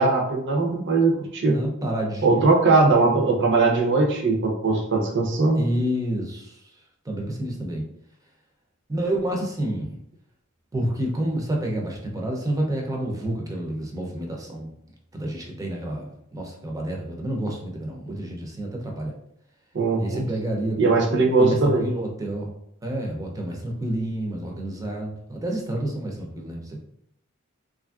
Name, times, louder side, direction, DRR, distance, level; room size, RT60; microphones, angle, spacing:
voice 1, 0.0-1.6 2.2-5.6 19.7-20.2 20.8-21.8, right 3 dB, 55° right, 0 dB, 0.6 m, -20 dB
voice 2, 1.4-2.6 5.5-6.6 7.1-7.8 8.9-10.0 10.7-14.7 15.1-19.1 20.0-22.5 22.8-26.8, right 1 dB, 15° right, 0 dB, 0.5 m, -29 dB
3.0 x 2.5 x 2.3 m, 0.75 s
head